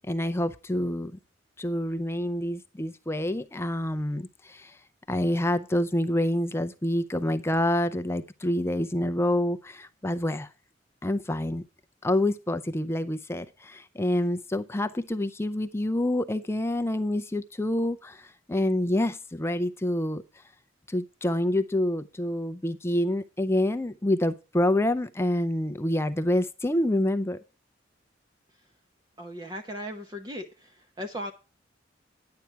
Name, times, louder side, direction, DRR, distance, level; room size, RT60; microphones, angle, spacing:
voice 1, 0.1-1.1 1.6-4.8 5.1-10.5 11.0-11.6 12.0-20.2 20.9-27.4, left 1 dB, 15° left, 0.5 m, -27 dB
voice 2, 29.2-31.3, equal, 20° right, 0.8 m, -37 dB
10.5 x 8.5 x 4.5 m
head